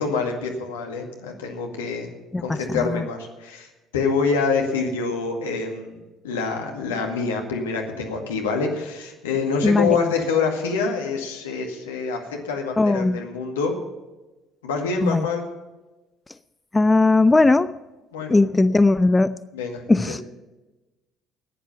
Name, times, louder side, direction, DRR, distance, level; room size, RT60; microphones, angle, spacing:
voice 1, 0.0-2.1 2.4-13.7 14.6-15.5 18.1-18.4 19.5-20.2, left 4 dB, 80° left, 2 dB, 2.1 m, -26 dB
voice 2, 2.3-3.0 9.6-10.0 12.8-13.2 15.0-15.3 16.7-17.7 18.3-19.4 19.9-20.2, left 2 dB, 20° left, 15 dB, 0.5 m, -18 dB
15.0 x 10.0 x 5.8 m, 1.1 s
figure-of-eight pair, 55°, 0 cm